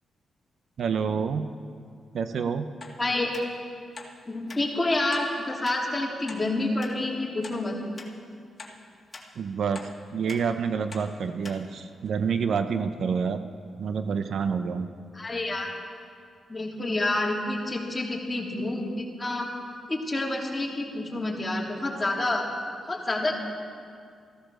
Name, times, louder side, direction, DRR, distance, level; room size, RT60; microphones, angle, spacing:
voice 1, 0.8-1.5 2.1-2.7 9.4-9.8 10.1-13.4 13.8-14.9, right 6 dB, 70° right, 9 dB, 0.7 m, -28 dB
sound 1, 2.8-3.0 3.3-3.5 3.9-4.1 4.5-4.6 5.1-5.3 5.6-5.8 6.3-6.4 6.8-6.9 7.4-7.6 8.0-8.1 8.6-8.7 9.1-9.3 9.7-9.9 10.3-10.4 10.9-11.1 11.4-11.6 12.1-12.2, left 3 dB, 40° left, 2.0 m, -43 dB
voice 2, 3.0-3.3 4.3-7.8 15.1-15.7 16.5-19.5 19.9-22.5 22.8-23.3, left 2 dB, 20° left, -2 dB, 3.2 m, -28 dB
14.5 x 13.5 x 6.4 m, 2.3 s
cardioid pair, 65°, 0 cm